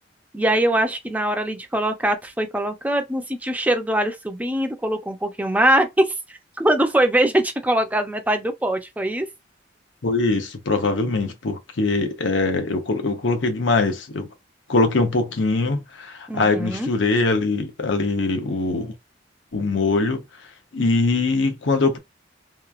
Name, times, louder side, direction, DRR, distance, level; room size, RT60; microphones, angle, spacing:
voice 1, 0.3-9.3 16.3-16.9, right 1 dB, 10° right, 0.5 m, -22 dB
voice 2, 10.0-14.3 14.7-18.9 19.5-20.2 20.7-22.0, left 3 dB, 90° left, 0.8 m, -22 dB
3.0 x 2.3 x 2.4 m
head